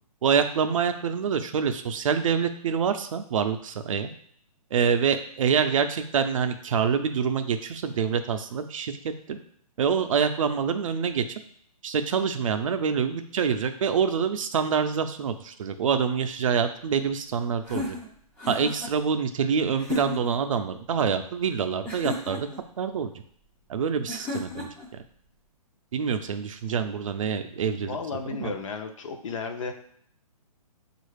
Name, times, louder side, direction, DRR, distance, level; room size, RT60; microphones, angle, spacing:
voice 1, 0.2-4.1 4.7-9.4 9.8-11.2 11.8-18.0 18.5-22.5 22.8-23.1 23.7-24.7 25.9-28.0 28.4-28.5, right 6 dB, 55° right, 8 dB, 0.4 m, -26 dB
sound 1, 17.6-18.9 19.8-20.4 21.9-22.6 24.1-24.9, left 2 dB, 5° left, 0.4 m, -34 dB
voice 2, 27.7-29.7, left 5 dB, 55° left, 5 dB, 0.6 m, -34 dB
5.3 x 2.4 x 3.2 m, 0.63 s
hypercardioid pair, 155°, 20 cm